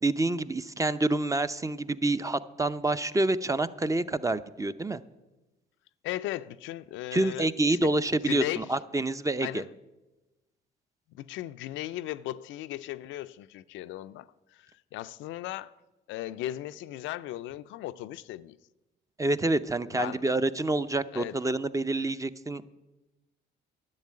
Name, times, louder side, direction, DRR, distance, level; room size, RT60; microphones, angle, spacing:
voice 1, 0.0-5.0 7.1-9.6 19.2-22.7, right 2 dB, 15° right, 0.5 m, -27 dB
voice 2, 6.0-7.9 8.2-8.7 9.4-9.7 11.1-15.7 16.1-18.6 19.9-20.2 21.1-21.4, left 14 dB, 85° left, 0.4 m, -37 dB
10.5 x 7.5 x 8.5 m
cardioid pair, 75°, 19 cm